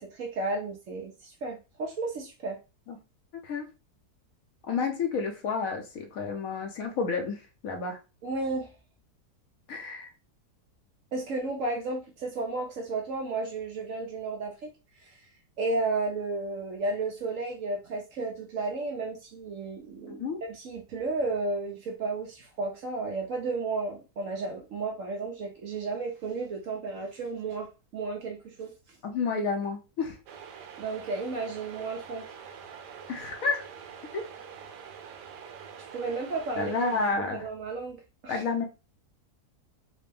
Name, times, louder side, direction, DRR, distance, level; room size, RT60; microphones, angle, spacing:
voice 1, 0.0-2.6 8.2-8.7 11.1-14.7 15.0-15.1 15.6-28.7 30.8-32.3 35.9-36.8 37.1-38.4, right 3 dB, 60° right, 3 dB, 1.0 m, -33 dB
voice 2, 4.7-8.0 9.7-10.1 20.1-20.4 29.0-30.2 33.1-33.7 34.1-34.2 36.6-37.5 38.3-38.6, left 4 dB, 65° left, 4 dB, 1.0 m, -30 dB
sound 1, 30.3-37.1, right 7 dB, 85° right, 1.2 m, -45 dB
4.2 x 2.1 x 3.3 m, 0.29 s
omnidirectional pair, 1.8 m